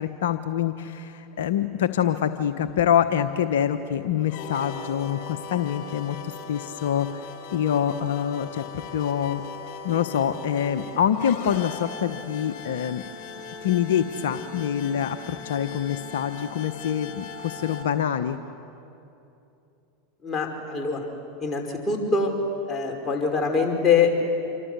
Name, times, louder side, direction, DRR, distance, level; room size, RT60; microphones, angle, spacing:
voice 1, 0.0-9.4 9.8-13.0 13.6-18.4, left 9 dB, 75° left, 9 dB, 1.0 m, -25 dB
sound 1, 4.2-17.8, left 4 dB, 55° left, 4.9 m, -39 dB
voice 2, 20.2-21.1 21.4-22.3 22.7-24.3, left 5 dB, 25° left, 1 dB, 5.4 m, -24 dB
27.5 x 24.5 x 8.2 m, 2.8 s
hypercardioid pair, 90°, 0 cm